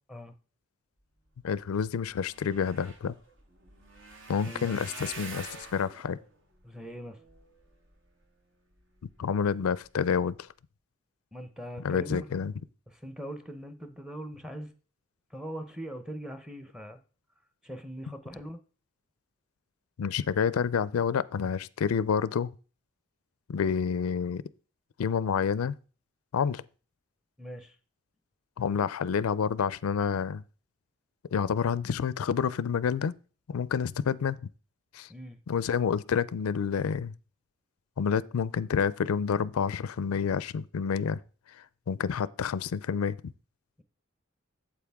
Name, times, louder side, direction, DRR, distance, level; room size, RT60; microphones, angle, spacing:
voice 1, 1.4-3.1 4.3-5.5 5.7-6.2 9.2-10.3 11.8-12.5 20.0-22.5 23.5-24.4 25.0-25.7 26.3-26.6 28.6-30.4 31.3-33.1 33.5-34.4 34.9-35.1 35.5-37.1 38.0-41.2 41.9-43.2, left 6 dB, 90° left, 0.4 m, -28 dB
sound 1, 1.9-8.3 8.8-9.2 9.7-9.9 10.1-10.2, right 3 dB, 65° right, 1.6 m, -47 dB
voice 2, 6.6-7.2 11.3-12.4 12.9-14.7 15.3-17.0 17.6-18.6 27.4-27.7 35.1-35.4, equal, 5° right, 0.7 m, -41 dB
8.5 x 7.6 x 3.5 m
head